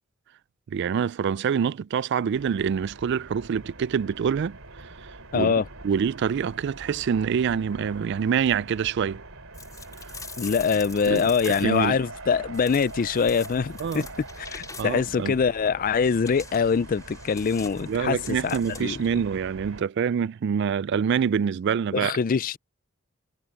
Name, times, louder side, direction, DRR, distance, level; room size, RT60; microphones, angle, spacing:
voice 1, 0.7-4.6 5.3-5.5 5.8-9.2 11.1-12.0 13.8-14.1 14.8-15.3 17.9-22.1, right 7 dB, 55° right, 0.3 m, -26 dB
sound 1, 2.3-19.8, right 2 dB, 90° right, 3.1 m, -43 dB
voice 2, 5.3-5.6 10.4-14.0 14.4-19.0 21.9-22.6, left 6 dB, 40° left, 0.4 m, -24 dB
sound 2, 9.5-11.9 12.5-15.2 16.0-19.1, left 5 dB, 15° left, 4.1 m, -44 dB
head